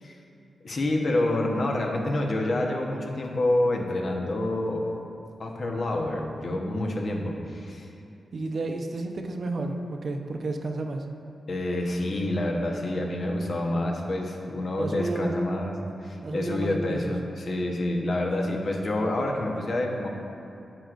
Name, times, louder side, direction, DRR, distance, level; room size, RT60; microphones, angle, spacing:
voice 1, 0.6-4.9 5.4-7.9 11.5-15.7 16.0-20.1, left 1 dB, 55° left, 1 dB, 1.0 m, -27 dB
voice 2, 8.3-11.1 14.8-15.4 16.2-17.1, right 2 dB, 55° right, 4 dB, 0.7 m, -31 dB
10.5 x 7.8 x 2.5 m, 2.7 s
cardioid pair, 90°, 0 cm